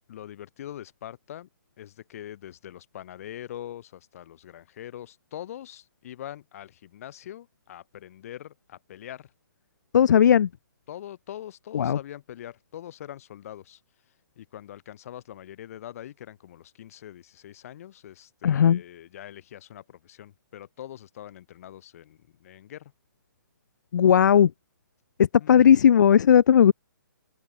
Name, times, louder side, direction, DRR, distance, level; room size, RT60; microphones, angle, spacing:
voice 1, 0.1-1.5 1.8-9.3 10.9-13.8 14.4-22.9 25.4-25.7, left 11 dB, 45° left, 7.8 m, -43 dB
voice 2, 9.9-10.5 11.7-12.0 18.4-18.8 23.9-24.5 25.2-26.7, left 8 dB, 60° left, 0.6 m, -17 dB
open air
hypercardioid pair, 155°, 11 cm